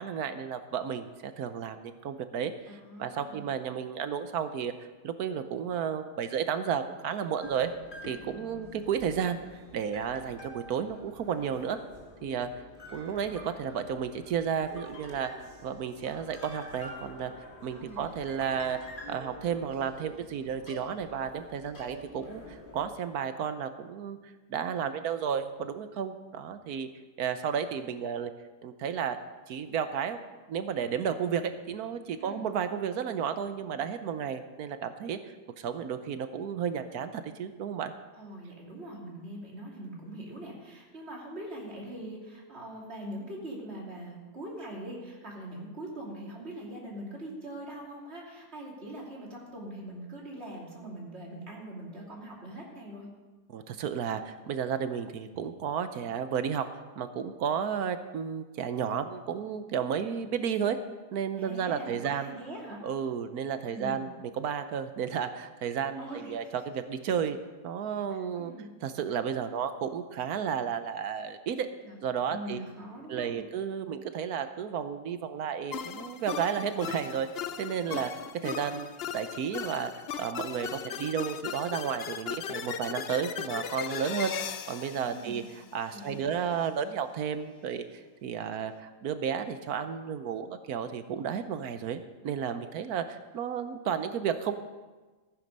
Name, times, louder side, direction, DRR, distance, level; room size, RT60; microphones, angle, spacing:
voice 1, 0.0-4.7 5.0-7.7 8.1-9.4 9.7-11.8 12.2-12.5 12.9-15.3 15.6-17.3 17.6-18.8 19.1-26.9 27.2-28.3 28.6-29.2 29.5-30.2 30.5-37.9 53.5-56.7 57.0-60.8 61.1-62.4 62.8-67.4 67.6-68.5 68.8-71.7 72.0-72.6 73.1-77.3 77.6-78.1 78.4-84.3 84.7-94.5, right 7 dB, 70° right, 10 dB, 1.2 m, -32 dB
voice 2, 2.7-3.5 17.7-18.1 32.2-32.4 38.2-53.1 61.4-62.8 63.6-64.0 66.0-66.4 68.3-68.7 71.8-72.0 72.3-73.4 85.0-85.4 85.9-86.3, right 1 dB, 40° right, -3 dB, 3.2 m, -42 dB
sound 1, 7.4-22.9, left 1 dB, 30° left, 2.1 m, -48 dB
sound 2, 75.7-86.1, left 8 dB, 60° left, 0.6 m, -38 dB
14.5 x 9.5 x 5.4 m, 1.3 s
omnidirectional pair, 1.7 m